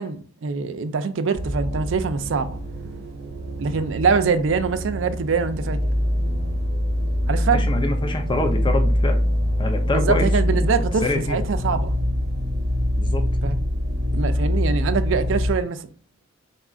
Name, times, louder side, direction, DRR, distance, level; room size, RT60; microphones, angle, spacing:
voice 1, 0.0-2.6 3.6-5.8 7.3-7.6 9.9-12.0 13.4-13.5 14.1-15.9, right 5 dB, 80° right, 0.4 m, -24 dB
sound 1, 1.3-15.5, equal, 60° right, 0.9 m, -24 dB
voice 2, 7.5-9.2 9.6-10.7 11.0-11.4 13.0-13.2, left 2 dB, 25° left, 0.5 m, -26 dB
4.1 x 2.4 x 3.6 m
head